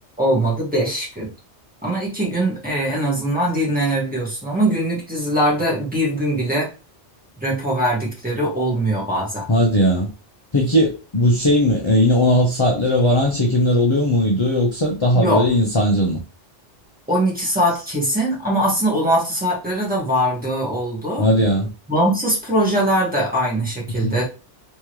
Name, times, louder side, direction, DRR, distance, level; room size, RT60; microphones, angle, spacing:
voice 1, 0.2-1.3 1.8-6.7 7.4-9.5 15.1-15.4 17.1-21.3 21.9-24.2, right 1 dB, 5° right, 1.6 m, -21 dB
voice 2, 9.5-10.1 10.5-16.2 21.2-21.7 24.0-24.2, left 1 dB, 35° left, 0.5 m, -18 dB
3.5 x 3.1 x 3.1 m
omnidirectional pair, 1.2 m